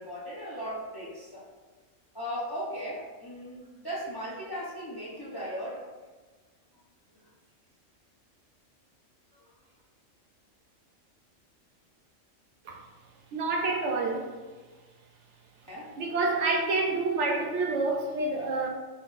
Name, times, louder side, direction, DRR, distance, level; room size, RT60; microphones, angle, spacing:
voice 1, 0.0-1.4 2.1-5.9 7.1-7.3 9.3-9.4 15.7-15.9, equal, 30° left, -5 dB, 0.5 m, -37 dB
voice 2, 13.3-14.3 16.0-18.7, right 3 dB, 70° right, 1 dB, 0.9 m, -28 dB
5.8 x 2.5 x 2.4 m, 1.3 s
omnidirectional pair, 1.3 m